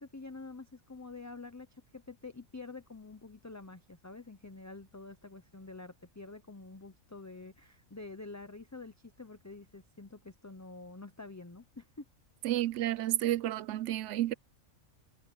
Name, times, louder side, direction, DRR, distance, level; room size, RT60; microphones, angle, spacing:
voice 1, 0.0-12.0, left 3 dB, 15° left, 0.6 m, -47 dB
voice 2, 12.4-14.3, right 14 dB, 65° right, 0.9 m, -31 dB
omnidirectional pair, 1.4 m